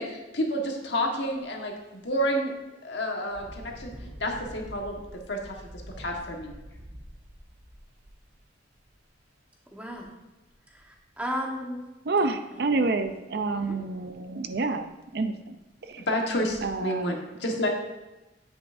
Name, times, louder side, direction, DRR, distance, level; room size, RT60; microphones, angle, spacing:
voice 1, 0.0-2.5 2.8-3.9 4.2-5.0 5.3-5.5 6.0-6.5 16.1-17.7, equal, 70° left, 1 dB, 1.4 m, -29 dB
Engine, 1.2-1.4 1.9-2.0 3.3-9.0 9.9-10.0 10.5-11.2 13.0-13.1 13.5-13.6 14.1-14.2 14.5-15.0 15.5-15.7 16.3-16.7, equal, 85° right, 1.7 m, -46 dB
voice 2, 9.7-10.1 10.7-11.8 12.7-12.9 13.5-13.8, equal, 10° right, -1 dB, 1.2 m, -35 dB
voice 3, 12.1-15.5 15.9-16.0 16.6-17.1, right 3 dB, 55° right, 9 dB, 0.5 m, -28 dB
9.6 x 8.0 x 2.6 m, 1.1 s
head